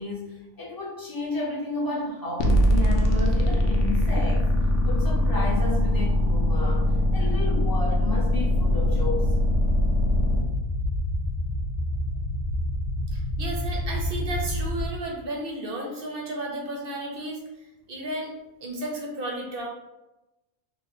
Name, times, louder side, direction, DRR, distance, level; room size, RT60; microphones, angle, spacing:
voice 1, 0.0-4.5 4.8-6.8 7.1-9.3, left 2 dB, 20° left, -6 dB, 0.7 m, -32 dB
sound 1, 2.4-10.4, left 1 dB, 70° left, 0.8 m, -22 dB
sound 2, 8.5-14.9, left 1 dB, 85° left, 1.1 m, -28 dB
voice 2, 13.1-18.3 18.6-19.7, right 1 dB, 55° right, -1 dB, 0.7 m, -33 dB
2.9 x 2.1 x 4.1 m, 0.99 s
omnidirectional pair, 1.4 m